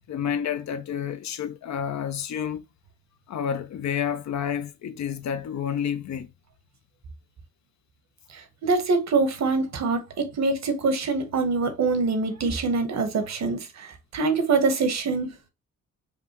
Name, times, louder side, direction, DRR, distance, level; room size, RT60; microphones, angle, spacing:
voice 1, 0.1-2.6 3.3-6.3, left 8 dB, 70° left, 0.6 m, -29 dB
voice 2, 8.3-15.4, right 4 dB, 65° right, 1.0 m, -25 dB
5.4 x 2.2 x 2.9 m
cardioid pair, 90°, 29 cm